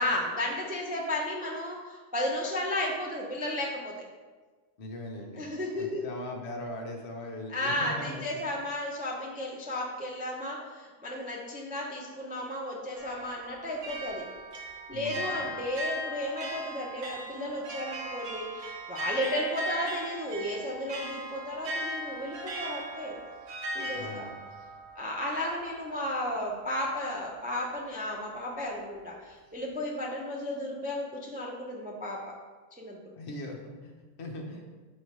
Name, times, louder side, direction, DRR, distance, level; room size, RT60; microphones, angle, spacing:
voice 1, 0.0-3.9 5.4-6.0 7.5-14.2 14.9-23.2 23.7-24.3 25.0-32.4 32.8-33.1, left 1 dB, 10° right, -2 dB, 0.4 m, -34 dB
voice 2, 4.8-5.4 5.7-8.2 14.9-15.4 23.9-24.3 33.2-34.8, left 1 dB, 50° left, 0 dB, 1.1 m, -40 dB
sound 1, 13.0-25.9, right 1 dB, 80° right, 1.4 m, -38 dB
5.5 x 4.3 x 4.6 m, 1.4 s
omnidirectional pair, 1.6 m